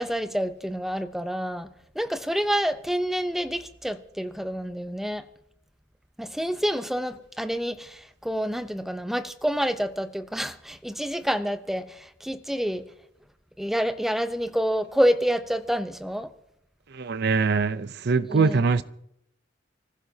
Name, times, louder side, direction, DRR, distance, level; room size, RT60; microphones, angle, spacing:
voice 1, 0.0-1.7 1.9-5.2 6.2-12.8 13.6-16.3 18.3-18.6, equal, ahead, 0.6 m, -28 dB
voice 2, 16.9-18.8, right 4 dB, 60° right, 0.6 m, -23 dB
25.0 x 15.5 x 2.8 m
head